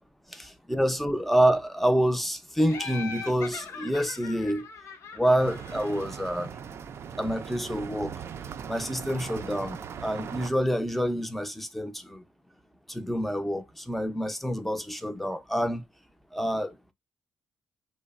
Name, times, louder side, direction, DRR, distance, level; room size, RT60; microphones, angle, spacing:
voice 1, 0.7-4.6 5.1-6.5 7.2-8.1 8.7-12.2 12.9-15.8 16.3-16.7, equal, 5° left, 0.5 m, -27 dB
Laughter, 2.7-6.3, left 5 dB, 70° left, 0.8 m, -41 dB
sound 1, 5.4-10.5, right 7 dB, 55° right, 0.4 m, -39 dB
2.9 x 2.0 x 2.4 m
cardioid pair, 80°, 5 cm